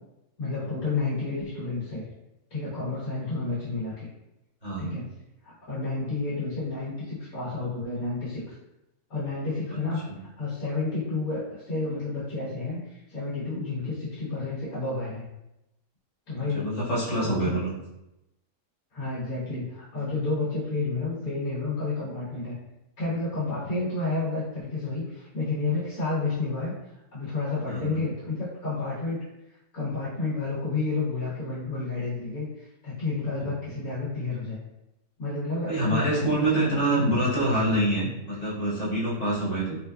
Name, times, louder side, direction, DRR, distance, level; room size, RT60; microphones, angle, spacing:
voice 1, 0.4-2.0 2.5-4.1 4.8-5.0 5.4-8.6 9.1-15.3 16.3-16.7 17.2-17.6 18.9-22.6 23.0-29.2 29.7-34.6 35.2-37.2, left 3 dB, 75° left, -9 dB, 1.7 m, -30 dB
voice 2, 4.6-5.0 10.1-10.2 16.3-17.7 27.7-28.0 33.4-33.5 35.7-39.8, right 1 dB, 30° left, -7 dB, 1.0 m, -26 dB
4.1 x 2.4 x 2.3 m, 0.91 s
omnidirectional pair, 1.6 m